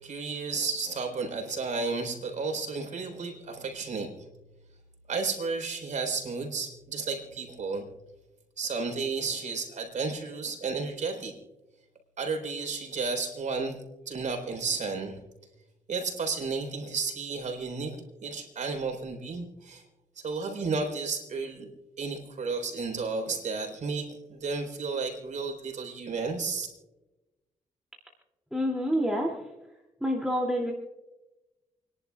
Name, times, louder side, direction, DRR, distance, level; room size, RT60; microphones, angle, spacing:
voice 1, 0.0-4.2 5.1-7.9 8.6-11.3 12.2-13.8 14.1-15.2 15.9-19.8 20.2-21.7 22.0-26.7, right 4 dB, 60° right, 4 dB, 3.9 m, -32 dB
voice 2, 28.5-29.5 30.0-30.7, equal, 5° right, -2 dB, 2.6 m, -27 dB
29.0 x 11.0 x 2.3 m, 1.0 s
cardioid pair, 60°, 14 cm